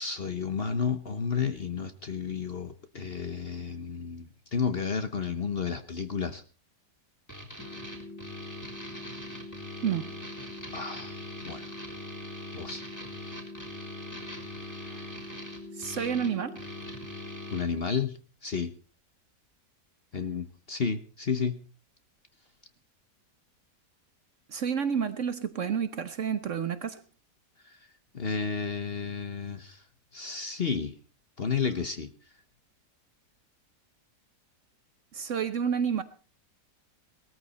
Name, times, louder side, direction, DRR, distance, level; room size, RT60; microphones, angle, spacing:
voice 1, 0.0-6.4 10.7-11.2 11.4-11.8 12.5-12.9 17.5-18.7 20.1-21.6 27.6-27.8 28.1-29.8 30.1-30.9 31.4-32.1, left 6 dB, 40° left, 1.0 m, -32 dB
sound 1, 7.3-17.6, equal, 10° left, 3.5 m, -43 dB
sound 2, 7.6-17.6, left 2 dB, 60° left, 6.6 m, -44 dB
voice 2, 9.8-10.2 14.8-15.1 15.8-16.6 24.5-27.0 35.1-36.0, right 7 dB, 55° right, 1.1 m, -30 dB
18.0 x 14.0 x 4.2 m
omnidirectional pair, 1.8 m